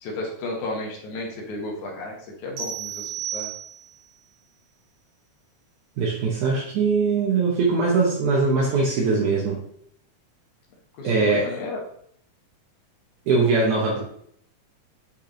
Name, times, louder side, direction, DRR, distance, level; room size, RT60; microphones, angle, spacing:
voice 1, 0.0-3.5 11.0-11.8, left 2 dB, 70° left, 0 dB, 2.6 m, -33 dB
sound 1, 2.6-4.1, right 9 dB, 90° right, 3.4 m, -33 dB
voice 2, 6.0-9.6 11.0-11.5 13.3-14.0, right 4 dB, 75° right, -3 dB, 2.5 m, -21 dB
8.9 x 3.4 x 3.9 m, 0.65 s
omnidirectional pair, 3.7 m